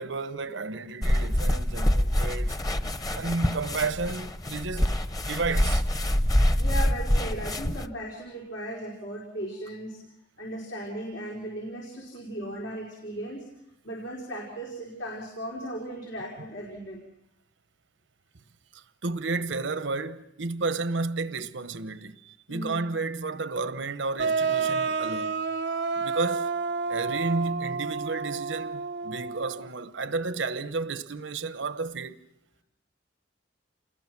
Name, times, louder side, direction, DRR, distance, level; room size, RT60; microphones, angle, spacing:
voice 1, 0.0-2.6 3.1-5.9 18.7-25.3 26.0-26.5 26.9-32.2, right 3 dB, 85° right, 1.0 m, -32 dB
sound 1, 1.0-7.9, equal, 20° left, 0.9 m, -25 dB
voice 2, 6.6-10.0 10.4-13.4 13.8-17.1 22.5-22.8, right 1 dB, 90° left, 4.6 m, -37 dB
sound 2, 24.2-29.7, right 5 dB, 70° right, 0.8 m, -29 dB
28.5 x 20.5 x 6.1 m
head